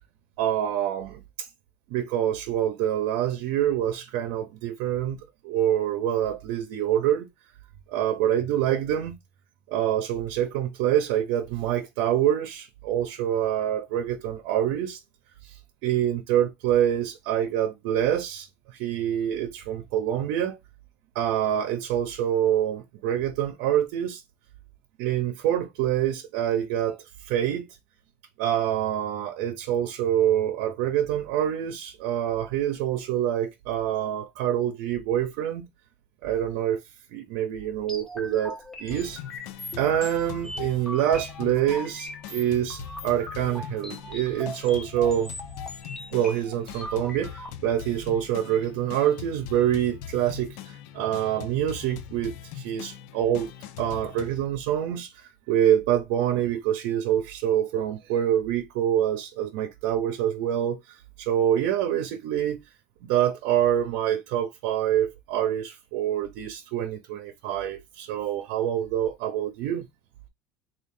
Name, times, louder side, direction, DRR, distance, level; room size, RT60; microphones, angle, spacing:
voice 1, 0.4-1.5 1.9-7.3 7.9-9.2 9.7-15.0 15.4-15.6 15.8-20.6 21.1-24.2 25.0-27.0 27.2-27.7 28.4-35.7 36.2-36.8 37.1-39.2 39.8-45.3 46.1-53.5 53.8-62.6 63.0-69.9, right 11 dB, 75° right, 0.6 m, -26 dB
sound 1, 37.9-47.5, left 1 dB, 10° left, 0.7 m, -40 dB
sound 2, 38.9-54.5, left 10 dB, 70° left, 0.4 m, -42 dB
3.6 x 2.4 x 3.6 m
cardioid pair, 155°, 5 cm